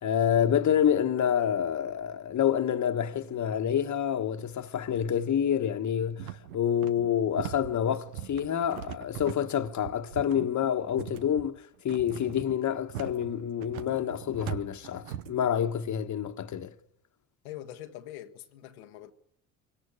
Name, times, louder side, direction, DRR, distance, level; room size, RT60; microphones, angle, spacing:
voice 1, 0.0-16.7, left 9 dB, 45° left, 1.3 m, -28 dB
sound 1, 6.2-15.4, right 12 dB, 90° right, 0.9 m, -40 dB
voice 2, 17.4-19.1, left 12 dB, 85° left, 1.2 m, -43 dB
23.5 x 17.5 x 9.9 m
hypercardioid pair, 60°, 42 cm